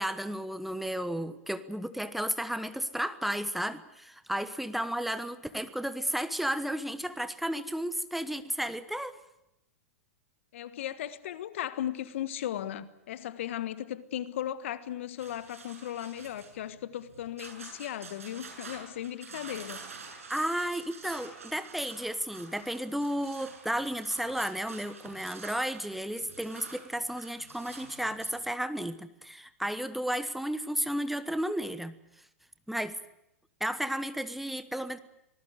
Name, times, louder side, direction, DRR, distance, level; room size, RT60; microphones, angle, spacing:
voice 1, 0.0-9.2 20.3-31.9 32.7-32.9 33.6-35.0, equal, ahead, 1.2 m, -33 dB
voice 2, 10.5-19.8, left 11 dB, 65° left, 1.4 m, -36 dB
sound 1, 15.2-28.4, right 4 dB, 80° right, 7.4 m, -48 dB
25.5 x 19.5 x 8.1 m
hypercardioid pair, 105°, 8 cm